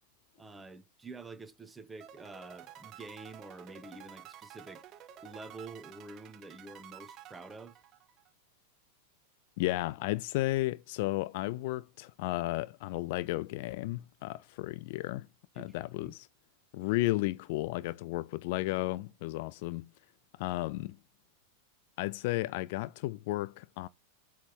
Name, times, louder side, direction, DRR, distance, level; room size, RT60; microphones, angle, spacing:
voice 1, 0.4-4.8 5.2-7.8 15.5-16.1, right 3 dB, 10° right, 1.0 m, -48 dB
sound 1, 2.0-8.3, right 10 dB, 35° right, 0.7 m, -52 dB
voice 2, 9.6-15.3 15.6-16.3 16.7-19.9 20.4-21.0 22.0-23.9, left 18 dB, 50° left, 0.3 m, -33 dB
7.9 x 3.5 x 4.3 m
figure-of-eight pair, 90°, 0 cm